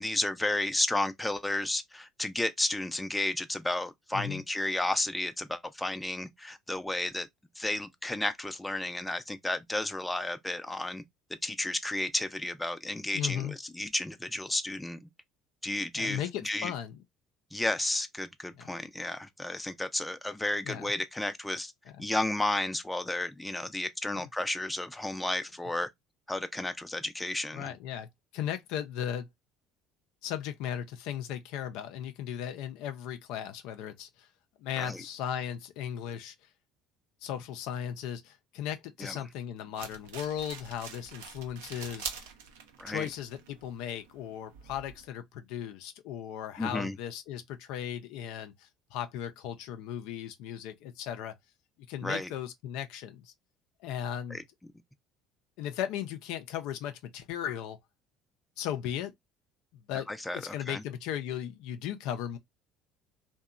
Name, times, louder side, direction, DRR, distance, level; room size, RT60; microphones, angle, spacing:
voice 1, 0.0-7.3 7.6-11.0 11.4-15.1 15.6-16.7 17.5-21.7 22.0-25.9 26.3-27.6 34.8-35.0 39.0-39.2 42.8-43.1 46.6-46.9 52.0-52.3 54.3-54.4 60.1-60.8, left 1 dB, 10° left, 0.5 m, -32 dB
voice 2, 4.1-4.4 13.1-13.5 15.9-17.0 18.5-18.7 20.6-20.9 22.0-22.1 24.1-24.3 27.5-28.1 28.3-29.3 30.2-34.3 34.6-36.3 37.2-42.3 42.9-51.3 51.9-53.3 53.8-54.4 55.6-57.8 58.6-59.1 59.9-62.4, left 10 dB, 70° left, 0.4 m, -37 dB
sound 1, 39.7-45.0, right 7 dB, 80° right, 0.5 m, -45 dB
2.7 x 2.2 x 2.4 m
hypercardioid pair, 65°, 0 cm